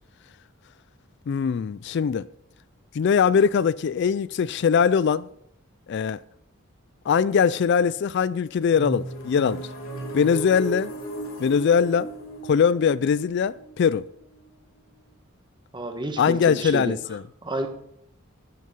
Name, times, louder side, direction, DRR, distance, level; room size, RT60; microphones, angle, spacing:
voice 1, 1.3-2.3 2.9-5.3 5.9-6.2 7.1-9.6 10.1-10.9 11.4-12.1 12.4-14.1 16.2-17.2, left 6 dB, 55° left, 0.3 m, -21 dB
sound 1, 8.7-14.5, right 1 dB, 85° left, 2.8 m, -35 dB
voice 2, 15.7-16.9 17.4-17.7, right 1 dB, 20° right, 1.4 m, -30 dB
11.0 x 9.3 x 5.3 m
head